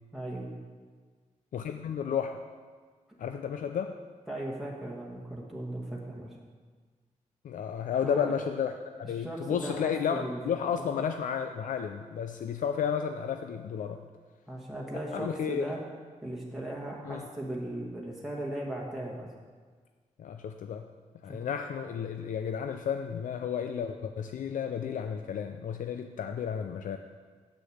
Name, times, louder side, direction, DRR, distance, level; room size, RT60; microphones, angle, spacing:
voice 1, 0.1-0.5 4.3-6.4 8.0-8.3 9.1-10.4 10.7-11.0 14.5-15.8 16.2-19.3 21.3-21.4, right 1 dB, ahead, -3 dB, 1.4 m, -37 dB
voice 2, 1.5-2.4 3.2-3.9 7.4-8.7 9.0-14.0 15.1-15.7 17.1-17.3 20.2-20.9 21.2-27.0, left 7 dB, 80° left, 6 dB, 0.5 m, -32 dB
8.2 x 6.5 x 7.7 m, 1.5 s
wide cardioid pair, 145°, 13 cm